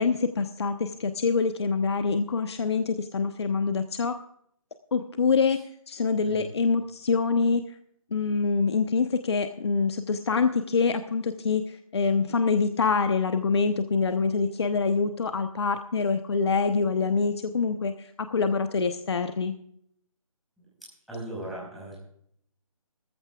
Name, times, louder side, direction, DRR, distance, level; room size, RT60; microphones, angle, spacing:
voice 1, 0.0-4.1 4.9-5.6 5.9-7.6 8.1-19.5, left 5 dB, 50° left, 8 dB, 0.9 m, -25 dB
voice 2, 21.1-22.0, right 1 dB, ahead, -7 dB, 5.0 m, -37 dB
17.0 x 14.5 x 2.4 m, 0.68 s
hypercardioid pair, 170°, 18 cm